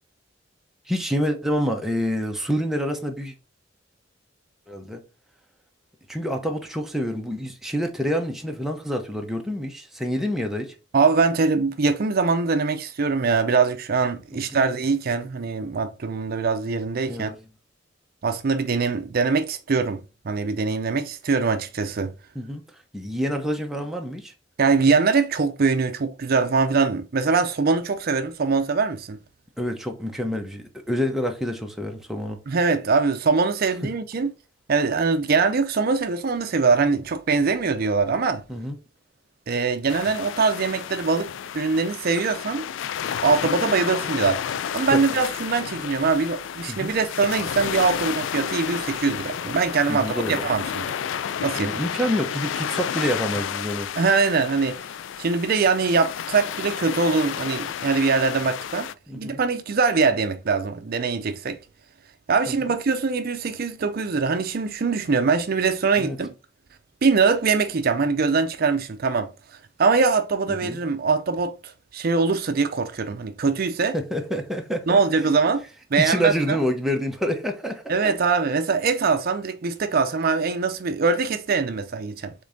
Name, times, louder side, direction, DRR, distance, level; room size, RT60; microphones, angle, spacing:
voice 1, 0.9-3.3 4.7-5.0 6.1-10.7 14.3-14.6 17.1-17.3 22.3-22.6 22.9-24.3 29.6-32.4 38.5-38.8 44.9-45.0 46.7-46.9 49.9-50.5 51.6-53.9 59.1-59.4 62.6-62.7 66.0-66.2 70.5-70.8 73.9-75.3 76.0-78.1, equal, ahead, 0.8 m, -27 dB
voice 2, 10.9-17.3 18.2-22.1 24.6-29.2 32.5-34.3 34.7-38.4 39.5-41.3 41.5-42.6 43.2-44.4 44.7-50.9 51.4-51.8 54.0-54.8 55.2-58.9 59.1-61.6 62.3-66.3 67.0-69.3 69.8-73.9 74.9-75.6 75.9-76.6 77.9-82.3, right 4 dB, 50° right, 0.5 m, -22 dB
sound 1, 39.9-58.9, left 9 dB, 75° left, 0.3 m, -31 dB
5.2 x 3.7 x 2.6 m
head